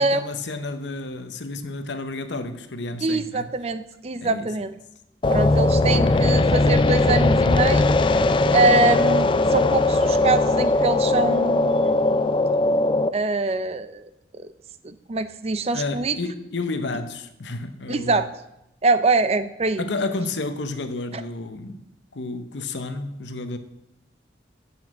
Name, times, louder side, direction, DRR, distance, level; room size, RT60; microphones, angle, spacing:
voice 1, 0.0-3.5 4.2-4.5 15.7-18.2 19.8-21.8 22.1-23.6, left 3 dB, 80° left, 0.8 m, -31 dB
voice 2, 3.0-4.7 5.3-8.0 8.5-12.4 13.1-14.5 14.8-16.2 17.9-18.3 18.8-19.9 21.1-21.2, right 3 dB, 35° right, 0.5 m, -24 dB
sound 1, 5.2-13.1, left 2 dB, 25° left, 0.3 m, -19 dB
7.1 x 6.1 x 7.4 m
head